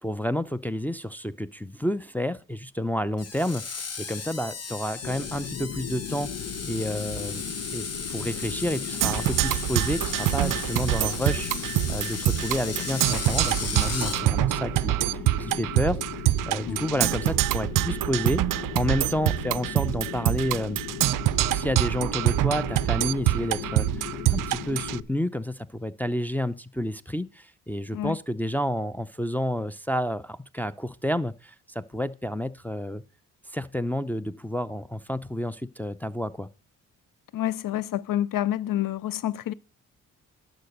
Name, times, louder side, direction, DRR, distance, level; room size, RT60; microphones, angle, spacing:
voice 1, 0.0-6.3 6.6-14.9 15.4-16.0 16.4-20.8 21.5-33.0 33.5-36.5, equal, 5° left, 0.6 m, -30 dB
Screech, 3.2-14.2, left 5 dB, 40° left, 1.4 m, -35 dB
sound 1, 5.0-25.0, left 7 dB, 80° left, 1.3 m, -37 dB
Percussion, 9.0-25.0, right 16 dB, 60° right, 0.4 m, -25 dB
voice 2, 37.3-39.5, left 12 dB, 60° left, 0.6 m, -28 dB
12.0 x 5.1 x 6.5 m
supercardioid pair, 50°, 37 cm